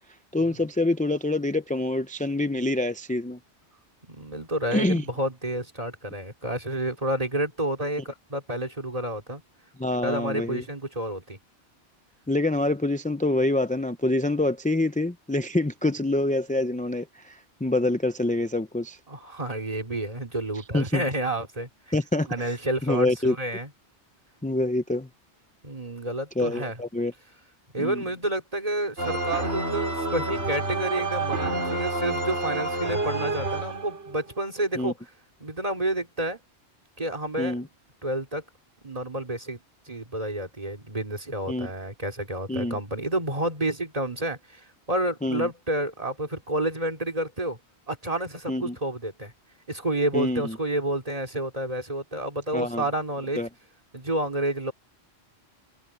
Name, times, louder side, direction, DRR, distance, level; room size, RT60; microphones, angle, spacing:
voice 1, 0.3-3.4 4.7-5.0 9.8-10.6 12.3-19.0 20.7-21.0 21.9-22.6 22.8-23.4 24.4-25.1 26.4-27.1 27.8-28.0 34.8-34.9 37.4-37.7 41.5-41.7 42.5-42.7 45.2-45.5 48.5-48.8 50.1-50.6 52.5-52.8 53.4-53.5, left 2 dB, 10° left, 0.6 m, -26 dB
voice 2, 4.0-9.4 10.0-11.4 19.1-21.7 22.3-23.7 25.6-26.8 27.7-35.0 35.4-36.4 37.0-37.7 38.0-38.4 38.8-39.6 39.9-47.6 47.9-49.3 49.7-53.4 53.9-54.7, right 1 dB, 30° right, 3.0 m, -30 dB
sound 1, 29.0-34.2, right 2 dB, 80° right, 5.1 m, -29 dB
omnidirectional pair, 1.2 m